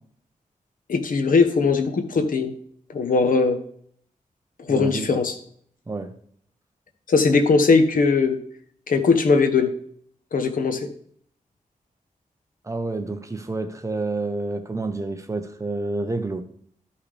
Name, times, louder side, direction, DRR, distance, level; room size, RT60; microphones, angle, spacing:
voice 1, 0.9-2.5 2.9-3.6 4.7-5.3 7.1-8.4 8.9-9.7 10.3-10.8, left 4 dB, 80° left, 7 dB, 1.2 m, -19 dB
voice 2, 4.7-5.2 5.9-6.1 12.6-16.4, right 2 dB, 20° right, 7 dB, 0.9 m, -29 dB
13.0 x 5.7 x 3.3 m, 0.62 s
wide cardioid pair, 150°, 14 cm